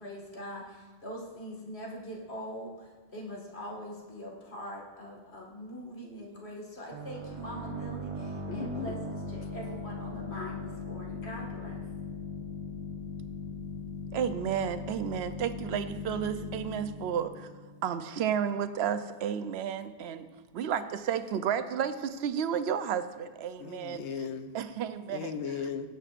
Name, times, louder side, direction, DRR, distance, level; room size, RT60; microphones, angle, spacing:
voice 1, 0.0-11.9, equal, 70° left, -2 dB, 2.1 m, -42 dB
sound 1, 6.9-18.4, left 2 dB, 35° right, 0.6 m, -39 dB
voice 2, 8.5-8.9 23.6-24.5 25.1-25.9, left 6 dB, 90° left, 9 dB, 1.0 m, -36 dB
voice 3, 14.1-17.5 17.8-20.3 20.5-24.0 24.5-25.4, right 8 dB, 70° right, 11 dB, 0.8 m, -32 dB
18.5 x 8.0 x 2.5 m, 1.3 s
omnidirectional pair, 1.1 m